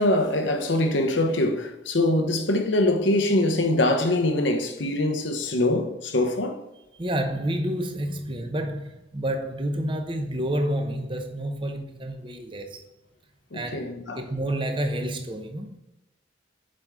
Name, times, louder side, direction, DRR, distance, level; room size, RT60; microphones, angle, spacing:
voice 1, 0.0-6.6 13.5-14.2, left 1 dB, 70° left, 0.9 m, -23 dB
voice 2, 6.9-12.8 13.5-13.9 14.2-15.8, right 1 dB, 25° right, 0.8 m, -29 dB
7.6 x 5.4 x 3.6 m
head